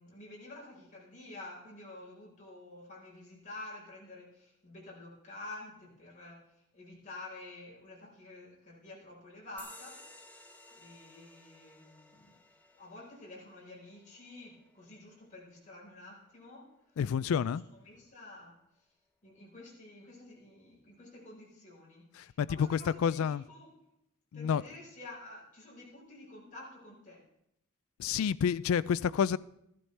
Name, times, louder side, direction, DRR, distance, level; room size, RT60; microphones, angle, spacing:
voice 1, 0.0-6.4 6.7-10.0 10.7-12.3 12.8-16.7 17.2-17.5 17.8-18.6 19.2-23.7 24.3-27.2, left 2 dB, 35° left, 4.4 m, -49 dB
sound 1, 9.6-16.6, left 2 dB, 10° left, 0.8 m, -57 dB
voice 2, 17.0-17.6 22.1-23.4 24.3-24.6 28.0-29.4, left 7 dB, 75° left, 0.3 m, -29 dB
14.0 x 12.0 x 3.3 m
head